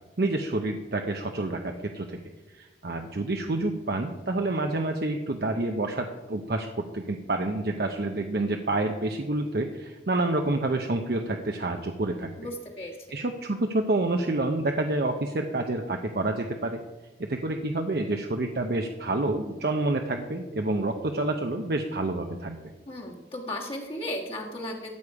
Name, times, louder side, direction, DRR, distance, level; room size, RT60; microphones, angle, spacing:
voice 1, 0.2-2.2 2.5-12.3 13.1-16.8 17.3-22.6, right 2 dB, 60° right, 4 dB, 0.7 m, -28 dB
voice 2, 12.4-12.9 22.9-25.0, left 1 dB, 30° left, -2 dB, 1.6 m, -35 dB
14.0 x 8.3 x 4.8 m, 1.2 s
head